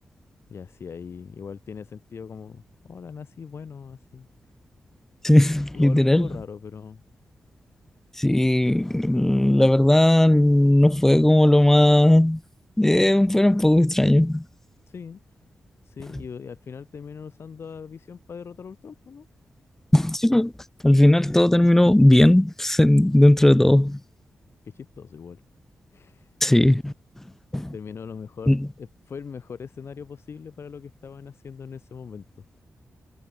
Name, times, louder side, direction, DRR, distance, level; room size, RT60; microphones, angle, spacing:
voice 1, 0.5-4.3 5.4-7.0 14.9-15.2 15.8-19.3 24.6-25.4 25.9-26.3 27.7-32.2, left 6 dB, 50° left, 3.1 m, -40 dB
voice 2, 5.2-6.3 8.2-12.4 12.8-14.4 19.9-20.5 20.8-24.0 26.4-26.9 27.5-27.7 28.5-28.6, left 1 dB, 5° left, 0.7 m, -17 dB
wide cardioid pair, 175°, 5 cm